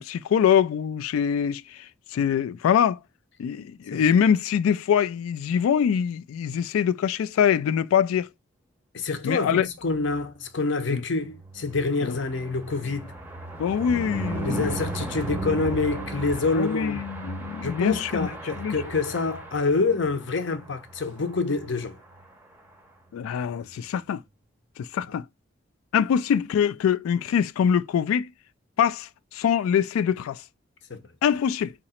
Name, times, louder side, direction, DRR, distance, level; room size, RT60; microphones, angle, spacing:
voice 1, 0.0-3.0 3.4-8.3 9.2-9.7 10.9-11.0 13.6-14.7 16.5-18.3 18.6-18.8 23.1-24.2 24.8-25.3 25.9-28.3 28.8-30.4 31.2-31.7, left 8 dB, 90° left, 0.3 m, -24 dB
voice 2, 8.9-13.1 14.4-17.0 17.6-22.0 30.9-31.0, left 3 dB, 60° left, 0.7 m, -27 dB
sound 1, 11.3-20.1 20.6-20.7 21.0-21.1 21.3-21.6, right 2 dB, 10° right, 0.6 m, -35 dB
3.8 x 3.0 x 4.2 m
head